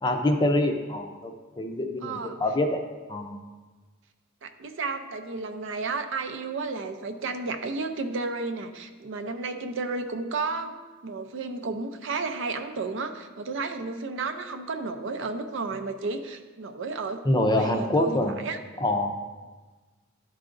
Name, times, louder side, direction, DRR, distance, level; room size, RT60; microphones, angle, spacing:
voice 1, 0.0-2.8 3.1-3.4 17.3-18.3 18.8-19.1, left 1 dB, 20° left, 4 dB, 0.5 m, -25 dB
voice 2, 2.0-2.4 4.4-10.8 11.0-17.2 17.5-18.6, right 3 dB, 65° right, 7 dB, 0.5 m, -32 dB
11.5 x 4.8 x 2.5 m, 1.3 s
head